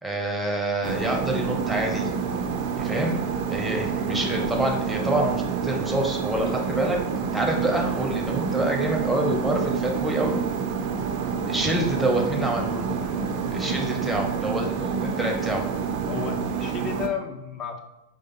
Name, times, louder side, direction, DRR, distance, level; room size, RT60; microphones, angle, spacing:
voice 1, 0.0-2.1 2.8-3.2 3.5-7.0 7.3-10.4 11.5-12.9 13.5-15.7, right 1 dB, 5° right, 1 dB, 0.8 m, -27 dB
sound 1, 0.8-17.1, right 6 dB, 45° right, 0.4 m, -28 dB
voice 2, 16.1-17.8, left 7 dB, 30° left, 3 dB, 0.7 m, -33 dB
4.7 x 2.5 x 4.1 m, 0.95 s
figure-of-eight pair, 90°, 0 cm